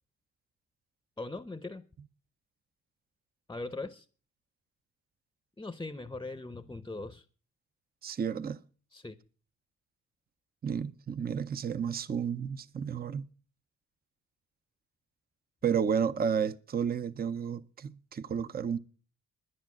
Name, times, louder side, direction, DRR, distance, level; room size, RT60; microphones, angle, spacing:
voice 1, 1.2-1.8 3.5-4.1 5.6-7.3 8.9-9.2, left 2 dB, 10° left, 0.7 m, -40 dB
voice 2, 8.0-8.6 10.6-13.3 15.6-18.8, right 7 dB, 30° right, 0.6 m, -31 dB
11.0 x 10.5 x 7.5 m
cardioid pair, 105°, 30 cm